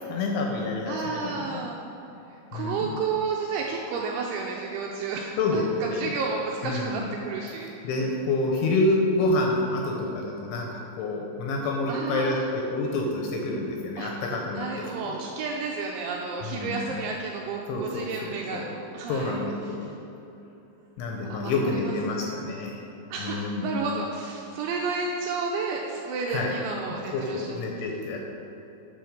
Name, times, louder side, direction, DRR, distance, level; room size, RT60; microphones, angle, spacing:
voice 1, 0.0-1.6 2.5-2.8 5.4-6.1 6.6-7.0 7.8-14.7 15.0-15.1 16.4-16.8 17.7-18.7 19.1-19.9 21.0-22.8 23.2-23.7 26.3-26.5 27.1-28.2, left 2 dB, 80° left, 0 dB, 2.8 m, -28 dB
voice 2, 0.9-1.8 2.3-7.7 11.9-12.5 14.0-14.1 14.5-18.6 18.9-19.8 21.3-22.4 23.1-27.5, right 4 dB, 85° right, -1 dB, 2.7 m, -32 dB
9.2 x 5.2 x 6.6 m, 2.9 s
omnidirectional pair, 5.9 m